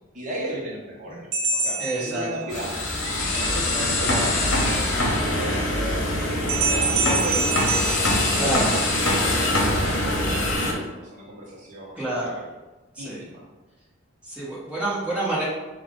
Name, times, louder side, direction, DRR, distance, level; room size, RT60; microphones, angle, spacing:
voice 1, 0.1-2.9 3.2-4.4 4.9-7.8 8.6-12.5 13.0-13.4, right 1 dB, 35° right, -4 dB, 1.0 m, -35 dB
sound 1, 1.3-2.9 6.5-9.0, right 4 dB, 60° right, 0.5 m, -26 dB
voice 2, 1.8-2.5 8.3-8.7 11.9-12.4 12.9-13.2 14.2-15.4, right 2 dB, 5° right, -9 dB, 1.4 m, -28 dB
sound 2, 2.5-10.7, left 1 dB, 60° left, 0.9 m, -23 dB
4.4 x 2.5 x 3.8 m, 1.2 s
head